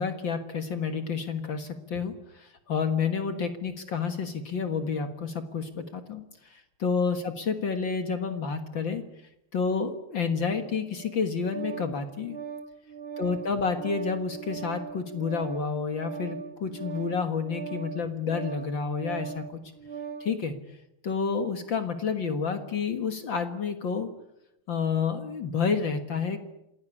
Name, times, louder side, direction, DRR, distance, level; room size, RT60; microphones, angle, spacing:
voice 1, 0.0-6.2 6.5-9.0 9.5-12.4 13.2-19.6 20.2-20.6 21.0-24.1 24.7-26.4, left 5 dB, 60° left, 8 dB, 1.2 m, -29 dB
Organ, 10.9-20.3, right 6 dB, 50° right, 0.7 m, -40 dB
27.5 x 17.5 x 9.9 m, 0.86 s
omnidirectional pair, 4.6 m